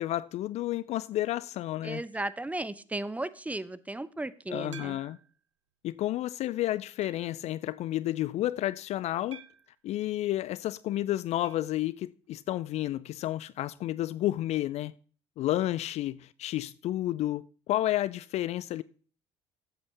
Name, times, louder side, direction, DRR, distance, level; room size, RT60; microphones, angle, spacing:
voice 1, 0.0-2.0 4.5-5.2 5.8-9.4 9.8-14.9 15.4-18.8, left 14 dB, 45° left, 0.4 m, -31 dB
voice 2, 1.8-5.0, right 2 dB, 10° right, 0.7 m, -35 dB
sound 1, 4.7-5.4 6.0-6.1 7.0-7.4 9.3-9.8 11.4-11.7 12.0-12.1 12.4-12.5 14.5-14.6, right 7 dB, 85° right, 0.5 m, -50 dB
13.5 x 8.0 x 3.3 m
figure-of-eight pair, 55°, 15 cm